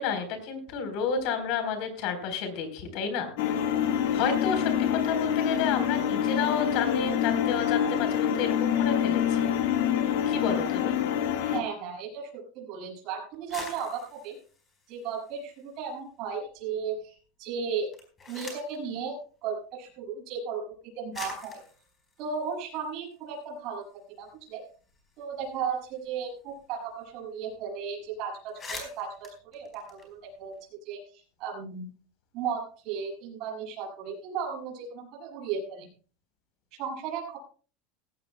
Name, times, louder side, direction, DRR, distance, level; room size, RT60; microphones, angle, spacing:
voice 1, 0.0-3.3 4.1-9.5 10.3-11.0, left 6 dB, 50° left, 7 dB, 4.0 m, -30 dB
sound 1, 3.4-11.6, left 9 dB, 70° left, 1.7 m, -26 dB
voice 2, 11.5-14.4 14.9-17.9 18.3-20.7 21.0-21.6 22.2-23.9 24.2-24.6 25.2-30.5 30.9-31.9 32.3-35.9 36.8-37.4, right 6 dB, 45° right, -1 dB, 6.9 m, -35 dB
sound 2, 13.3-15.9 16.3-17.0 17.8-18.8 19.9-20.0 20.7-20.8 21.1-23.4 23.8-23.9 24.2-26.8 27.0-27.2 27.5-27.7 28.1-28.2 28.4-30.6, left 3 dB, 20° left, 4.6 m, -46 dB
18.0 x 16.5 x 2.3 m, 0.40 s
supercardioid pair, 160°, 0 cm